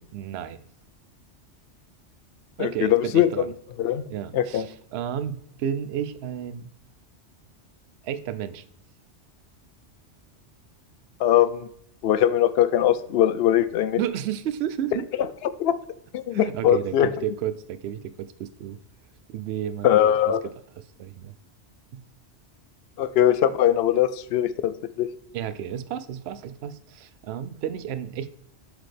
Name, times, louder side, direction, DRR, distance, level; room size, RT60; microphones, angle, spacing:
voice 1, 0.1-0.6 2.6-3.5 4.1-6.7 8.0-8.6 13.9-15.1 16.3-18.8 19.3-20.1 21.0-21.3 21.9-22.0 25.3-28.3, right 9 dB, 65° right, 13 dB, 0.8 m, -32 dB
voice 2, 2.6-3.3 3.8-4.0 4.3-4.7 11.2-11.7 12.0-14.0 15.4-15.8 16.1-17.1 19.8-20.4 23.0-25.1, left 11 dB, 65° left, 14 dB, 0.7 m, -21 dB
7.6 x 4.9 x 3.3 m, 0.70 s
omnidirectional pair, 1.2 m